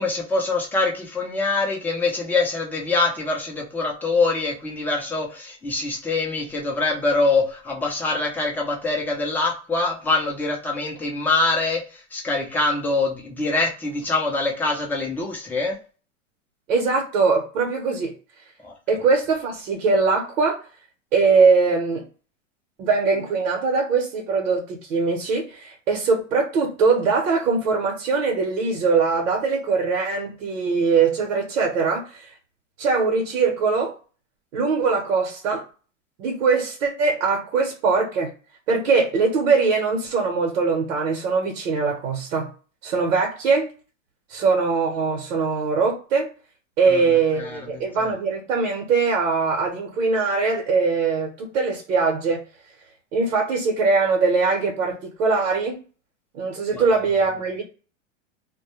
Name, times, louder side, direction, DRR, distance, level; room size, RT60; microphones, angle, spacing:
voice 1, 0.0-15.8 18.6-18.7 46.9-47.8 56.7-56.8, left 3 dB, 5° left, -1 dB, 0.4 m, -24 dB
voice 2, 16.7-18.1 18.9-20.6 21.1-22.0 22.8-32.3 32.8-33.9 34.5-35.6 36.2-38.3 38.7-42.5 42.8-43.7 44.3-46.3 46.8-52.4 53.1-55.8 56.3-57.6, right 4 dB, 80° right, 0 dB, 0.9 m, -21 dB
2.2 x 2.1 x 2.9 m, 0.37 s
hypercardioid pair, 125°, 38 cm